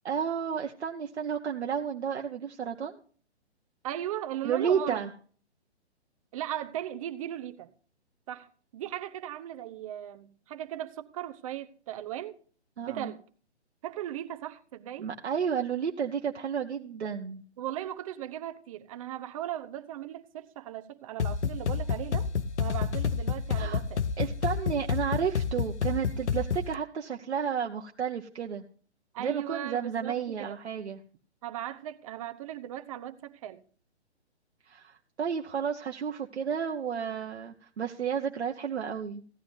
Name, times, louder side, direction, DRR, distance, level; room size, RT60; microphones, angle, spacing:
voice 1, 0.0-3.0 4.4-5.1 12.8-13.1 15.0-17.4 23.5-23.8 24.2-28.6 29.2-31.0 34.7-39.2, right 7 dB, 70° right, 1.0 m, -32 dB
voice 2, 3.8-5.1 6.3-7.7 8.3-12.4 12.8-13.2 13.8-15.1 17.6-22.3 22.6-24.0 29.1-30.6 31.4-33.6, right 12 dB, 30° right, 0.8 m, -37 dB
sound 1, 21.2-26.8, left 6 dB, 80° left, 0.7 m, -30 dB
16.0 x 11.0 x 2.6 m
figure-of-eight pair, 135°, 34 cm